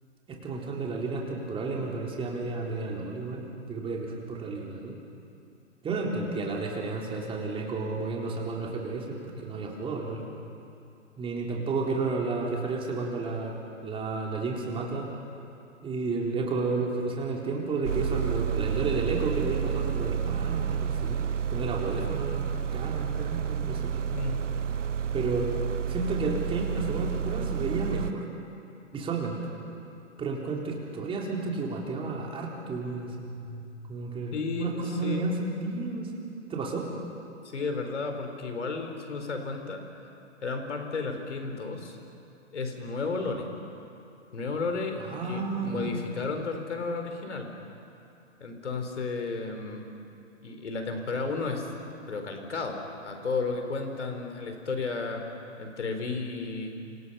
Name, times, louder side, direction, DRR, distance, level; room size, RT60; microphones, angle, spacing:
voice 1, 0.3-5.0 5.8-10.2 11.2-13.6 13.8-15.1 15.8-24.1 25.1-25.5 25.9-28.3 28.9-29.3 30.2-36.9 45.0-45.9, right 3 dB, 15° right, -1 dB, 3.8 m, -32 dB
sound 1, 17.8-28.1, right 8 dB, 75° right, 0.6 m, -30 dB
voice 2, 34.3-35.2 37.4-39.9 40.4-42.0 42.5-43.5 44.3-47.5 48.4-49.9 50.4-51.7 52.1-55.2 55.6-56.7, left 4 dB, 65° left, 5 dB, 4.4 m, -33 dB
29.5 x 27.0 x 5.7 m, 2.7 s
figure-of-eight pair, 120°, 37 cm